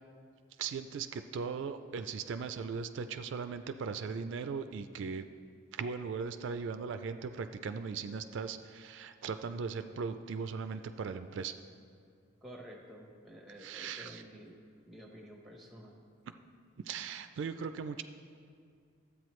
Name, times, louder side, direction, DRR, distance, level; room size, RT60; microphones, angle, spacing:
voice 1, 0.6-5.2 5.7-11.5 13.6-14.2 16.8-18.0, right 5 dB, 65° right, 9 dB, 0.3 m, -38 dB
voice 2, 12.4-14.6 14.9-16.0, equal, ahead, 0 dB, 0.9 m, -51 dB
13.0 x 8.1 x 3.1 m, 2.3 s
head